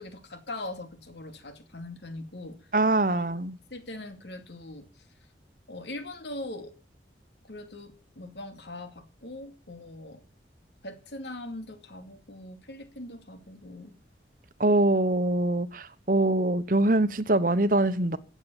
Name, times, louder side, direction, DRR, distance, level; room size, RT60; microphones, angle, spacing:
voice 1, 0.0-2.6 3.1-3.3 3.7-4.9 5.7-6.7 7.4-10.2 10.8-13.9, left 2 dB, 75° left, 2.7 m, -41 dB
voice 2, 2.7-3.6 14.6-18.2, right 2 dB, 50° right, 1.0 m, -23 dB
16.0 x 8.7 x 7.1 m
head